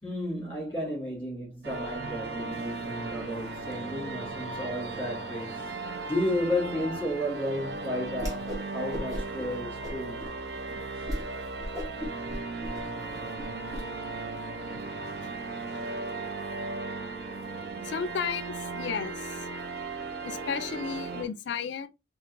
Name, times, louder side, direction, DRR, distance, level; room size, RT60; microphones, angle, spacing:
voice 1, 0.0-10.3 11.0-11.1, left 1 dB, 10° left, 2.2 m, -33 dB
sound 1, 1.6-21.2, right 3 dB, 60° right, 0.5 m, -36 dB
Whoosh swoosh swish, 8.1-8.6 8.9-9.4 9.8-10.3 10.7-10.8 11.1-11.3 11.6-13.8, equal, 20° right, 1.0 m, -36 dB
voice 2, 17.8-19.5 20.2-21.9, left 6 dB, 75° left, 0.4 m, -33 dB
4.4 x 2.4 x 2.5 m
head